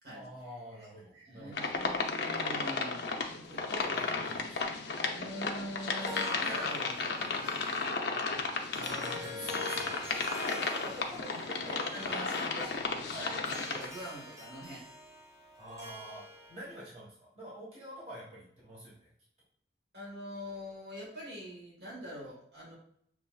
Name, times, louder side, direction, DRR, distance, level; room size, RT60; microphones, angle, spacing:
voice 1, 0.1-1.7 3.6-4.7 8.4-12.5 13.1-13.3 15.6-16.2 16.5-19.1, right 1 dB, 35° right, -6 dB, 1.4 m, -47 dB
voice 2, 1.1-3.9 5.1-7.8 11.9-14.9 19.9-22.8, equal, 60° right, -4 dB, 1.8 m, -44 dB
sound 1, 1.5-13.9, left 4 dB, 70° left, 0.6 m, -34 dB
Harp, 5.8-16.7, left 1 dB, 20° right, 1.0 m, -45 dB
6.6 x 3.0 x 2.4 m, 0.66 s
head